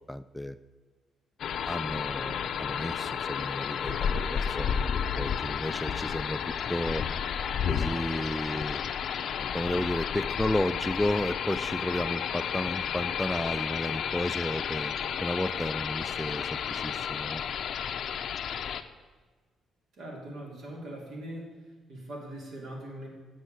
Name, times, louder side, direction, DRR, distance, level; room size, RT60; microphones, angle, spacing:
voice 1, 0.1-0.6 1.7-4.9 5.2-6.4 6.7-7.0 7.7-8.8 9.4-14.9 15.2-17.4, left 1 dB, 5° left, 12 dB, 0.3 m, -32 dB
sound 1, 1.4-18.8, left 7 dB, 65° left, 0.5 m, -32 dB
voice 2, 19.9-21.5 21.9-23.1, right 1 dB, 70° right, -1 dB, 3.0 m, -41 dB
8.1 x 6.4 x 7.7 m, 1.4 s
cardioid pair, 90°, 0 cm